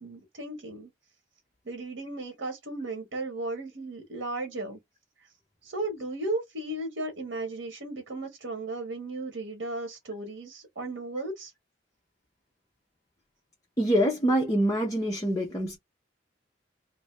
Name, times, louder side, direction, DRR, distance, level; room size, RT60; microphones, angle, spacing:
voice 1, 0.0-0.9 1.6-4.8 5.6-11.5, right 2 dB, 75° right, 1.0 m, -35 dB
voice 2, 13.8-15.8, equal, 20° left, 0.7 m, -25 dB
2.7 x 2.5 x 3.2 m
head